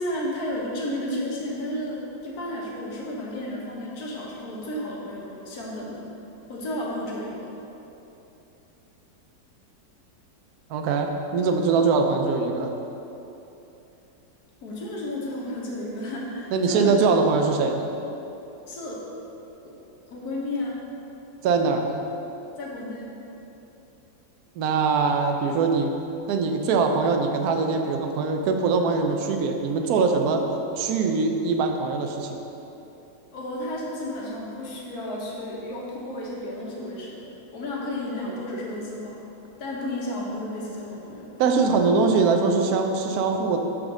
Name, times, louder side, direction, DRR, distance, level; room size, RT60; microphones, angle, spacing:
voice 1, 0.0-6.0 6.5-7.5 14.6-17.0 18.7-19.0 19.6-19.7 20.1-20.8 22.6-23.1 33.3-39.2 39.6-41.3, left 1 dB, 60° left, -4 dB, 1.6 m, -32 dB
voice 2, 10.7-12.7 16.5-17.9 21.4-22.0 24.6-25.9 26.3-30.4 30.8-32.4 41.4-43.6, right 4 dB, 70° right, 4 dB, 1.0 m, -22 dB
6.2 x 3.8 x 6.1 m, 3.0 s
omnidirectional pair, 2.0 m